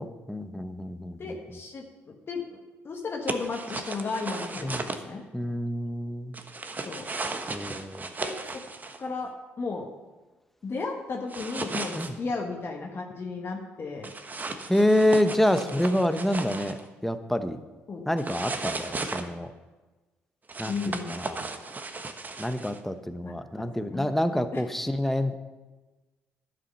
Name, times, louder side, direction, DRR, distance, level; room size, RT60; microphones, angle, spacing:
voice 1, 0.0-1.3 4.6-4.9 5.3-6.4 7.5-8.1 11.9-12.1 14.7-17.6 18.1-19.5 20.6-21.4 22.4-25.4, left 1 dB, 5° left, 9 dB, 1.0 m, -27 dB
voice 2, 1.2-2.6 2.8-5.2 6.8-7.1 8.2-8.6 9.0-9.3 9.6-9.9 10.6-14.1 17.9-18.1 20.7-21.1 23.2-23.4 23.9-24.1 24.5-24.6, left 4 dB, 45° left, 1 dB, 1.5 m, -34 dB
Wallet pulled out and in the pocket, 3.3-5.0 6.3-9.0 11.3-12.1 14.0-16.8 18.2-19.2 20.5-22.8, right 3 dB, 30° right, 1.2 m, -35 dB
11.5 x 7.7 x 5.6 m, 1.2 s
hypercardioid pair, 55°, 6 cm